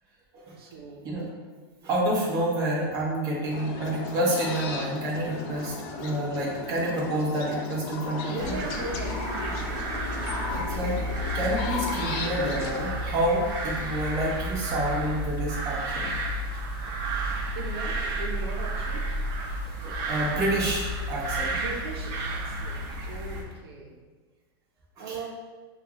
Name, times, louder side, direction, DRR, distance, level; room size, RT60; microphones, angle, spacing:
voice 1, 0.5-1.1 8.3-9.7 17.5-19.1 21.4-24.0 25.0-25.3, right 2 dB, 85° right, -1 dB, 0.8 m, -38 dB
voice 2, 1.8-8.6 9.7-11.0 11.3-16.1 16.8-16.9 19.5-21.5 25.0-25.2, right 1 dB, 25° right, -5 dB, 1.2 m, -29 dB
sound 1, 3.5-12.8, left 4 dB, 40° left, 0.5 m, -36 dB
sound 2, 8.4-23.4, right 1 dB, 55° right, 0.9 m, -31 dB
6.3 x 2.5 x 3.1 m, 1.4 s
supercardioid pair, 160°, 13 cm